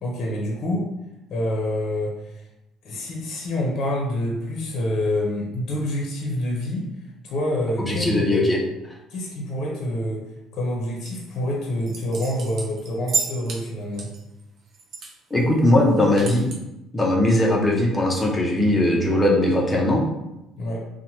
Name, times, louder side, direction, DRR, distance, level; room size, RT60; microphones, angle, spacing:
voice 1, 0.0-0.8 1.3-2.4 2.8-6.9 7.2-8.6 9.1-10.2 10.5-14.1 20.6-20.8, left 1 dB, 55° left, -1 dB, 0.6 m, -27 dB
voice 2, 7.9-8.6 15.3-16.5 16.9-20.0, left 1 dB, 15° left, -1 dB, 0.5 m, -19 dB
sound 1, 11.0-11.3 11.8-13.6 13.9-15.1 15.4-15.5 15.8-16.6, right 4 dB, 55° right, 0.5 m, -31 dB
2.9 x 2.1 x 2.8 m, 0.90 s
cardioid pair, 150°, 0 cm